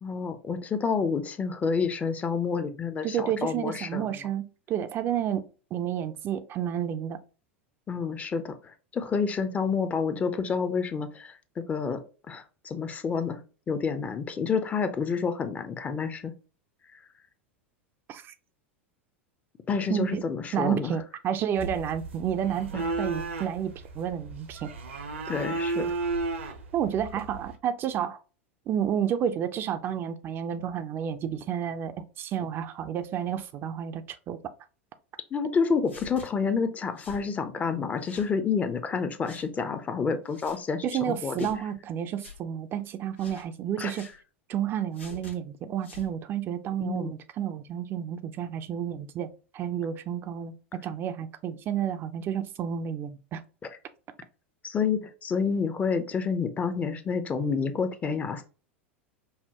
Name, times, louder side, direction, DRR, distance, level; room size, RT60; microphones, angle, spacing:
voice 1, 0.0-4.1 7.9-12.0 12.3-13.4 13.7-16.3 19.7-20.9 22.7-22.8 25.3-25.9 35.3-41.4 43.8-43.9 46.8-47.1 54.6-58.4, left 5 dB, 20° left, 0.5 m, -29 dB
voice 2, 3.0-7.2 18.1-18.3 19.9-20.2 20.5-24.7 26.7-28.2 28.7-34.4 40.8-44.1 44.5-50.5 50.8-53.4, right 9 dB, 35° right, 0.4 m, -31 dB
sound 1, 21.6-27.6, right 3 dB, 70° right, 0.7 m, -34 dB
sound 2, 35.9-36.3 37.0-37.2 38.0-38.3 39.2-39.5 40.3-40.6 41.4-41.6 42.2-42.4 43.2-43.5 43.9-44.2 44.9-45.4 45.8-46.1, left 4 dB, 75° left, 1.3 m, -47 dB
5.4 x 2.1 x 2.9 m
figure-of-eight pair, 85°, 7 cm